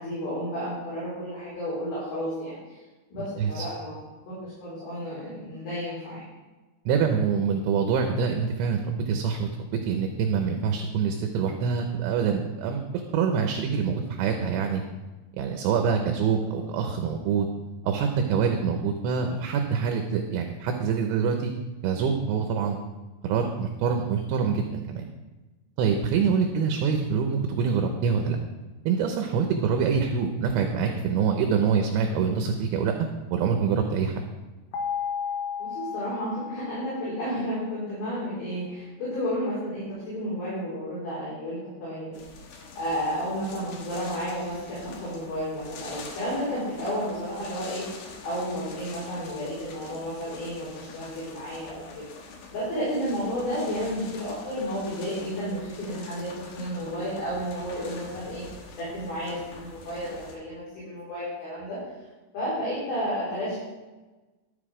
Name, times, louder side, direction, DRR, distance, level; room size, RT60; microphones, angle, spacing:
voice 1, 0.0-2.8 3.1-4.0 4.3-6.2 35.6-42.1 42.8-47.8 48.2-52.1 52.5-58.4 58.8-61.8 62.3-63.6, equal, 50° left, -10 dB, 5.9 m, -32 dB
voice 2, 3.2-3.7 6.9-12.8 13.1-14.8 15.3-17.5 17.8-21.5 21.8-22.8 23.2-25.1 25.8-28.4 28.9-33.0 33.3-34.3, right 6 dB, 75° right, 4 dB, 2.9 m, -25 dB
sound 1, 34.7-37.7, left 7 dB, 85° left, 4.0 m, -34 dB
sound 2, 42.1-60.4, left 3 dB, 65° left, 2.7 m, -45 dB
12.5 x 7.8 x 4.9 m, 1.2 s
omnidirectional pair, 5.8 m